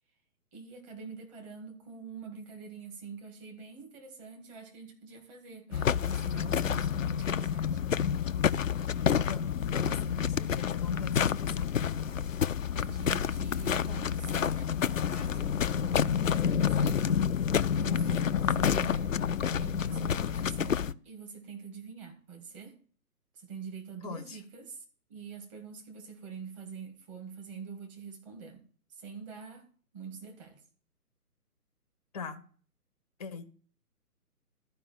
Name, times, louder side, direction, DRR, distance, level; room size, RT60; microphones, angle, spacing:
voice 1, 0.5-7.8 12.7-17.2 17.7-19.1 19.6-22.8 23.3-24.8 25.1-28.6 28.9-29.7 29.9-30.6, right 5 dB, 20° right, 2.0 m, -45 dB
sound 1, 5.7-20.9, left 8 dB, 60° left, 0.5 m, -29 dB
voice 2, 9.1-11.7 19.9-20.2 24.0-24.4 32.1-32.4 33.2-33.5, left 5 dB, 25° left, 0.8 m, -40 dB
12.5 x 5.1 x 7.8 m
figure-of-eight pair, 140°, 46 cm